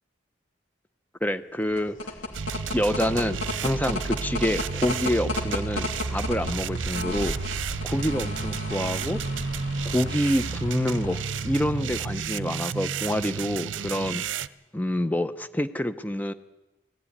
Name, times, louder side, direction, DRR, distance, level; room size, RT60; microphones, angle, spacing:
voice 1, 1.2-2.0 2.7-7.5 7.8-9.2 9.8-14.2 14.7-16.3, equal, 10° left, 10 dB, 0.8 m, -27 dB
sound 1, 1.6-12.4, left 2 dB, 80° left, 2.9 m, -35 dB
sound 2, 2.3-14.5, right 5 dB, 70° right, 0.6 m, -32 dB
19.5 x 15.0 x 9.9 m, 1.0 s
head